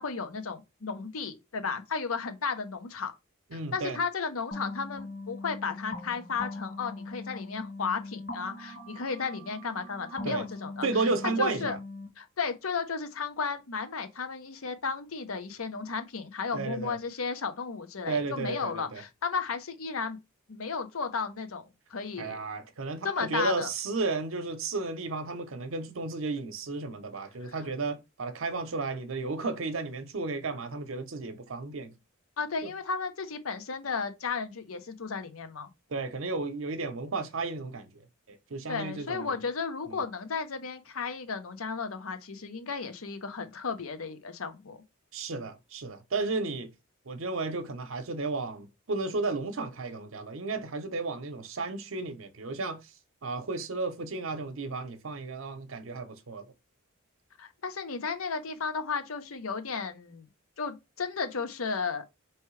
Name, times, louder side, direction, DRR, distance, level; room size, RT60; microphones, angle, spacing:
voice 1, 0.0-3.1 3.5-10.9 11.4-11.8 12.2-20.2 20.5-22.4 23.0-23.7 27.4-27.6 32.4-35.7 38.7-44.8 57.4-60.3 60.6-62.0, left 5 dB, 85° left, 0.7 m, -34 dB
voice 2, 3.5-4.0 10.2-10.5 10.8-11.8 16.5-17.0 18.1-19.0 22.2-31.9 32.6-32.7 35.9-37.9 38.3-39.4 39.9-40.0 45.1-46.7 47.1-52.9 53.2-56.4, right 3 dB, 70° right, 0.7 m, -33 dB
sound 1, 4.5-12.1, left 2 dB, 50° left, 1.5 m, -41 dB
4.5 x 3.1 x 3.1 m
head